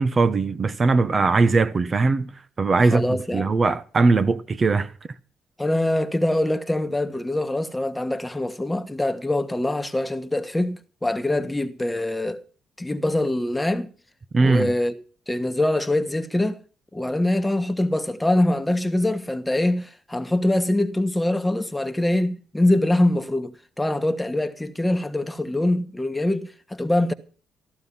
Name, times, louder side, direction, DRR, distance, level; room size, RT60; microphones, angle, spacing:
voice 1, 0.0-2.3 2.6-4.9 14.3-14.7, right 3 dB, 35° right, 1.1 m, -20 dB
voice 2, 2.8-3.5 5.6-12.4 12.8-13.9 14.4-14.9 15.3-16.6 16.9-27.1, left 1 dB, 10° left, 1.4 m, -24 dB
14.5 x 14.0 x 5.6 m
cardioid pair, 90°, 0 cm